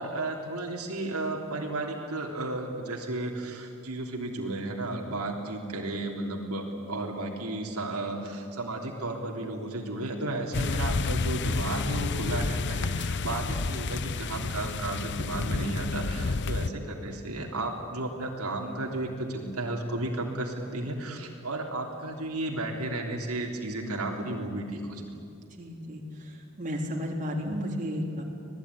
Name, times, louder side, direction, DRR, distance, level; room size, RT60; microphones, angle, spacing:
voice 1, 0.0-25.0, right 2 dB, 80° right, 1 dB, 3.3 m, -33 dB
sound 1, 10.5-16.7, left 3 dB, 55° left, 0.7 m, -30 dB
voice 2, 25.6-26.3 26.6-28.2, equal, 35° right, -1 dB, 3.7 m, -33 dB
26.0 x 19.0 x 9.7 m, 2.6 s
head